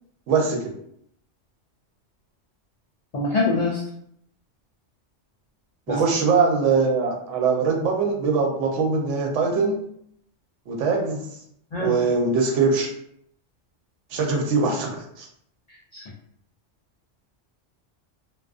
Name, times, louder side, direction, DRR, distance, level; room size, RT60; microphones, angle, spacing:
voice 1, 0.3-0.7 5.9-9.8 10.7-11.3 11.8-12.9 14.1-15.3, right 4 dB, 90° right, 0 dB, 1.0 m, -22 dB
voice 2, 3.1-3.8 5.9-6.0 11.7-11.9 15.9-16.0, left 3 dB, 70° left, -4 dB, 0.3 m, -24 dB
2.3 x 2.3 x 2.4 m, 0.71 s
omnidirectional pair, 1.2 m